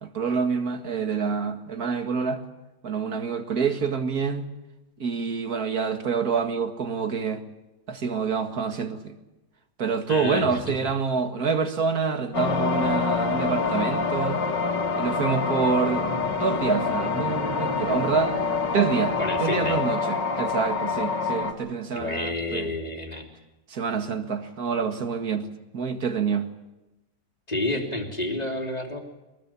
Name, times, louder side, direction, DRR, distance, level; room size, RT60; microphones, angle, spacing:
voice 1, 0.0-2.4 2.8-4.5 5.0-7.4 7.9-9.2 9.8-14.4 15.0-16.1 16.4-18.3 18.7-22.7 23.7-25.5 25.7-26.5, right 5 dB, 55° right, 2.2 m, -27 dB
voice 2, 10.1-10.7 19.2-19.8 21.9-23.3 27.5-29.0, left 2 dB, 20° left, 3.2 m, -29 dB
sound 1, 12.3-21.5, left 4 dB, 70° left, 2.7 m, -26 dB
23.5 x 20.0 x 8.8 m
omnidirectional pair, 2.0 m